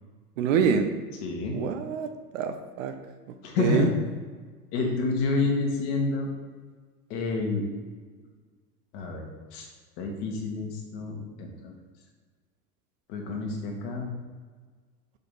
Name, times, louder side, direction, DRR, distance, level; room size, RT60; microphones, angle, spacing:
voice 1, 0.4-0.9 1.5-2.1 2.3-2.9 3.6-3.9, right 6 dB, 55° right, 7 dB, 0.7 m, -25 dB
voice 2, 1.2-1.6 3.4-3.9 4.7-6.3 7.1-7.6 8.9-9.7 10.0-11.7 13.1-14.1, left 3 dB, 50° left, 1 dB, 1.7 m, -29 dB
5.8 x 5.3 x 4.1 m, 1.4 s
figure-of-eight pair, 85°, 47 cm